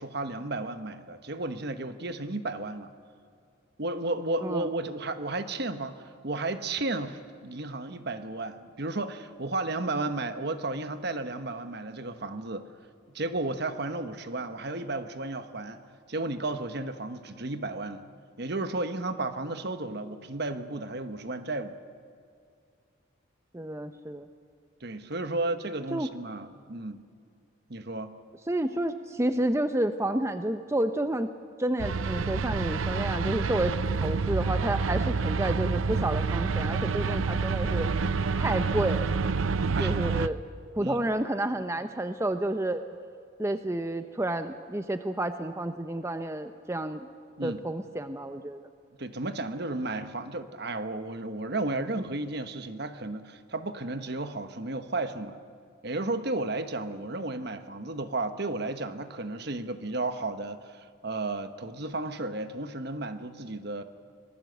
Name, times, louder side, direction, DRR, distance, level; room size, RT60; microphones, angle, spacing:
voice 1, 0.0-2.9 3.8-12.7 13.1-15.8 16.1-18.1 18.4-21.7 24.8-27.0 27.7-28.2 39.7-39.9 40.8-41.1 47.4-47.6 49.0-55.4 55.8-63.8, right 2 dB, 55° right, 9 dB, 1.2 m, -33 dB
voice 2, 23.5-24.3 25.9-26.1 28.5-31.3 31.6-37.9 38.4-39.1 39.8-40.4 40.8-42.8 43.4-47.1 47.4-48.6, right 1 dB, 15° right, 8 dB, 0.6 m, -30 dB
sound 1, 31.8-40.3, right 4 dB, 85° right, 0.6 m, -28 dB
25.5 x 19.5 x 8.0 m, 2.3 s
head